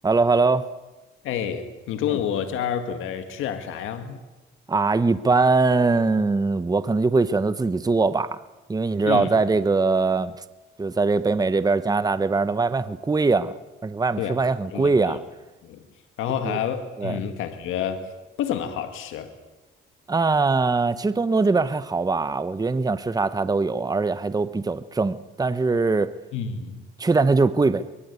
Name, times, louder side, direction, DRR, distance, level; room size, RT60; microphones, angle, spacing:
voice 1, 0.0-0.7 2.1-2.2 4.7-8.4 8.7-10.4 10.8-13.5 13.8-15.2 16.4-16.6 17.0-17.2 20.1-26.1 27.0-27.9, right 3 dB, 20° right, 14 dB, 0.9 m, -22 dB
voice 2, 1.2-4.2 9.0-9.3 14.2-14.4 14.7-15.2 15.6-15.8 16.2-18.1 18.4-19.3 26.3-26.9, left 8 dB, 90° left, 7 dB, 1.9 m, -29 dB
23.5 x 22.5 x 8.3 m, 1.1 s
cardioid pair, 90°, 20 cm